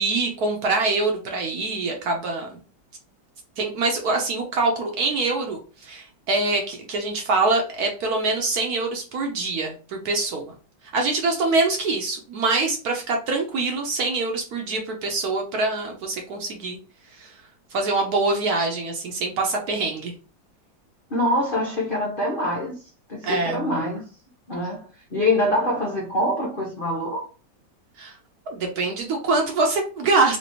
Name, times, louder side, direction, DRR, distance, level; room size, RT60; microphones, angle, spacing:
voice 1, 0.0-2.5 3.6-10.5 10.9-16.8 17.1-17.3 17.7-20.1 23.2-23.7 28.0-28.1 28.5-30.4, right 3 dB, 65° right, 1.0 m, -24 dB
voice 2, 21.1-22.8 23.1-24.0 24.5-27.3, left 1 dB, 80° left, 0.4 m, -24 dB
3.2 x 2.9 x 2.8 m
omnidirectional pair, 2.1 m